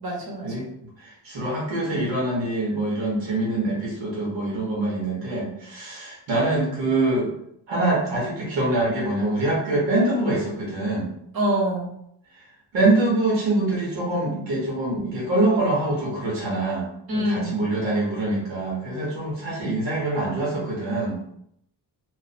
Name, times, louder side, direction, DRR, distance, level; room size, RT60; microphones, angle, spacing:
voice 1, 0.0-0.5 11.3-11.9 17.1-17.7, equal, 55° right, -1 dB, 1.2 m, -25 dB
voice 2, 1.0-7.3 7.7-11.1 12.7-21.2, right 2 dB, 85° right, -5 dB, 1.2 m, -24 dB
2.6 x 2.4 x 4.1 m, 0.73 s
cardioid pair, 85°, 44 cm